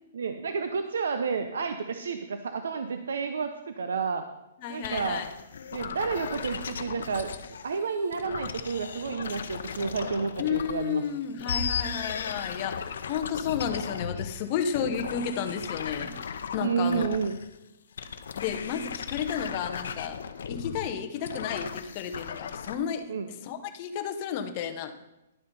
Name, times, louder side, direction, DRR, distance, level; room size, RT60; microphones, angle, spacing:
voice 1, 0.1-4.2 4.7-5.2 5.7-7.3 7.6-11.0 16.6-17.4 23.1-23.3, right 5 dB, 85° right, 8 dB, 0.7 m, -30 dB
voice 2, 4.6-5.3 10.4-17.2 18.3-20.2 20.5-23.1 23.4-24.9, left 7 dB, 30° left, 5 dB, 0.8 m, -32 dB
sound 1, 4.8-7.8 8.1-10.9 11.3-17.6 18.0-22.8, left 6 dB, 70° left, 0.7 m, -36 dB
11.0 x 6.7 x 5.4 m, 0.94 s
hypercardioid pair, 165°, 0 cm